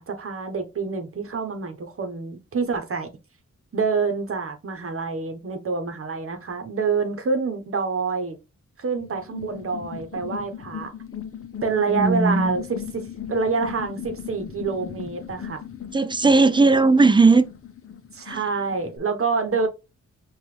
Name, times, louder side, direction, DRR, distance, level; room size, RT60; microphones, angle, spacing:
voice 1, 0.0-3.1 3.7-8.4 8.8-10.9 11.6-15.6 18.1-19.7, right 4 dB, 50° right, 1.0 m, -27 dB
sound 1, 9.0-19.0, left 8 dB, 50° left, 0.7 m, -38 dB
voice 2, 11.9-12.6 15.9-17.5 18.3-18.4, right 3 dB, 15° right, 0.4 m, -17 dB
5.8 x 2.5 x 3.2 m
wide cardioid pair, 115°, 29 cm